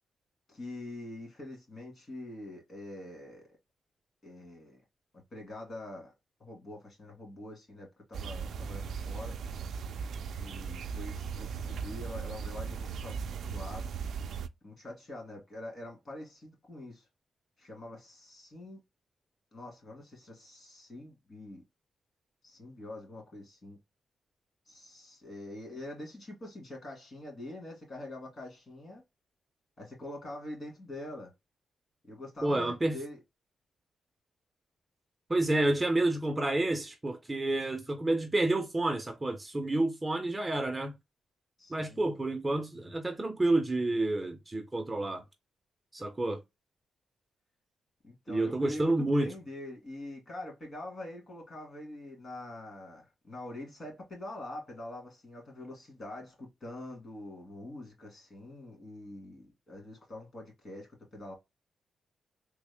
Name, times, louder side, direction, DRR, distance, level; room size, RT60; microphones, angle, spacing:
voice 1, 0.5-3.6 4.2-4.8 5.1-6.1 6.4-9.4 10.4-13.9 14.6-17.1 17.6-18.8 19.5-21.6 22.4-23.8 24.7-29.0 29.8-31.3 32.1-33.2 41.6-42.1 48.0-61.3, left 1 dB, 40° left, 1.9 m, -45 dB
sound 1, 8.1-14.5, right 6 dB, 70° right, 0.3 m, -38 dB
voice 2, 32.4-33.0 35.3-40.9 41.7-45.2 45.9-46.4 48.3-49.3, right 2 dB, 15° right, 0.5 m, -29 dB
3.5 x 2.0 x 3.3 m
cardioid pair, 125°, 0 cm